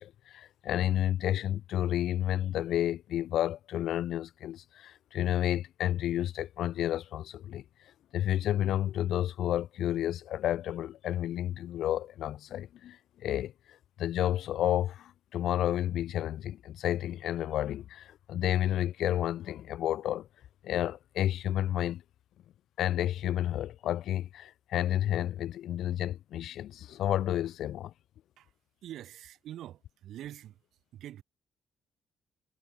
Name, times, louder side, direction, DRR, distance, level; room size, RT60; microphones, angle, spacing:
voice 1, 0.0-7.6 8.1-20.3 20.6-22.0 22.8-27.9, left 12 dB, 75° left, 0.4 m, -31 dB
voice 2, 28.8-30.6 30.9-31.2, right 12 dB, 75° right, 0.9 m, -45 dB
cardioid pair, 80°, 0 cm